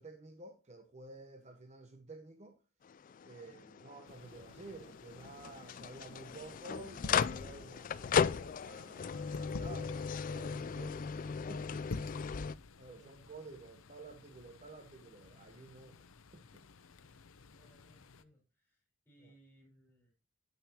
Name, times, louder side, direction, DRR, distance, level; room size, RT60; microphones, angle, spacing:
voice 1, 0.0-2.6 3.2-11.0 11.5-11.8 12.8-16.0 16.3-16.6 19.2-19.3, right 3 dB, 30° right, 0.9 m, -52 dB
sound 1, 2.8-12.5, left 6 dB, 40° left, 0.3 m, -37 dB
sound 2, 4.1-18.2, left 3 dB, 80° left, 0.7 m, -50 dB
voice 2, 12.9-13.3 17.5-20.1, right 1 dB, 10° left, 4.9 m, -66 dB
9.0 x 9.0 x 2.8 m
head